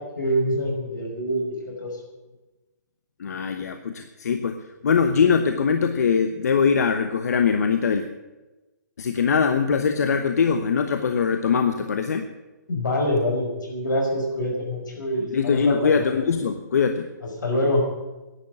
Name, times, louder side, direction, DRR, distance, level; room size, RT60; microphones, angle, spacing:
voice 1, 0.0-2.0 12.7-16.0 17.4-17.9, equal, 85° left, 1 dB, 5.6 m, -25 dB
voice 2, 3.2-4.6 4.8-8.1 9.0-12.2 15.3-17.1, left 6 dB, 60° left, 7 dB, 1.0 m, -22 dB
11.0 x 8.9 x 9.9 m, 1.1 s
hypercardioid pair, 175°, 10 cm